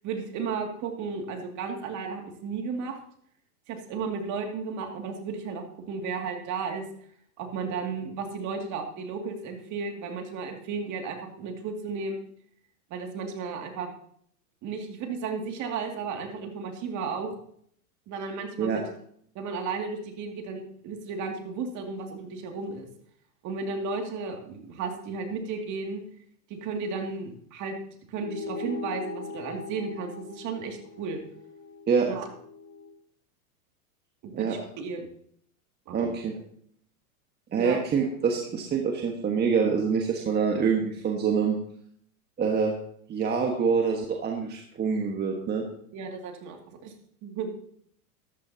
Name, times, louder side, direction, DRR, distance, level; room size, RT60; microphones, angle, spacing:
voice 1, 0.0-3.0 3.7-6.9 7.4-12.2 12.9-13.9 14.6-17.3 18.1-18.8 19.3-22.9 23.4-26.0 26.5-27.7 28.1-31.2 32.1-32.3 34.2-35.1 35.9-36.1 37.6-37.8 45.9-46.9 47.2-47.5, right 5 dB, 40° right, 3 dB, 2.4 m, -34 dB
sound 1, 28.1-33.0, left 4 dB, 20° left, 1.4 m, -40 dB
voice 2, 35.9-36.3 37.5-41.6 42.4-42.7 43.1-45.6, right 6 dB, 20° right, 1 dB, 1.5 m, -25 dB
13.5 x 13.0 x 2.9 m, 0.64 s
hypercardioid pair, 115°, 45 cm